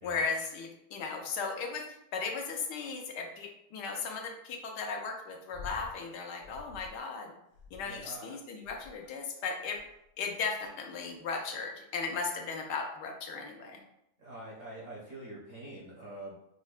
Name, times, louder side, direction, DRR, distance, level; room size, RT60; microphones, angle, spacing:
voice 1, 0.0-1.8 2.1-7.3 7.7-9.8 10.2-13.8, left 5 dB, 85° left, 2 dB, 1.2 m, -36 dB
sound 1, 5.5-6.0 6.4-7.0 7.5-8.1 8.6-9.1 9.7-10.1 10.8-11.2 12.1-12.2, left 5 dB, 65° left, 1.0 m, -49 dB
voice 2, 7.8-8.3 14.2-16.4, right 1 dB, 50° right, -6 dB, 0.7 m, -45 dB
5.3 x 2.1 x 2.4 m, 0.80 s
omnidirectional pair, 1.8 m